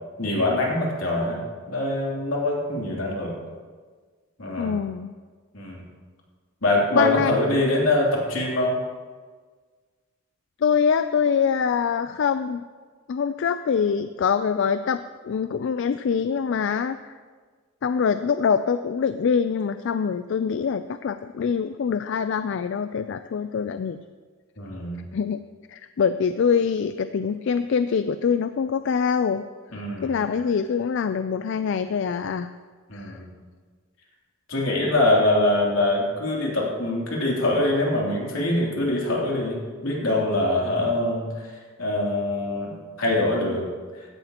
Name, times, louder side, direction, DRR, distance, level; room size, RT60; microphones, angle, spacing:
voice 1, 0.2-1.4 1.7-3.3 4.4-4.7 5.5-5.8 6.6-8.8 24.6-25.0 29.7-30.1 32.9-33.3 34.5-41.3 41.8-42.7 43.0-43.6, left 1 dB, 80° left, -3 dB, 3.0 m, -23 dB
voice 2, 4.6-5.2 6.9-7.3 10.6-12.6 13.1-17.2 17.8-24.0 25.1-25.4 25.7-29.4 30.0-32.5 32.9-33.1, left 6 dB, 65° left, 11 dB, 0.3 m, -24 dB
16.0 x 11.5 x 2.9 m, 1.5 s
head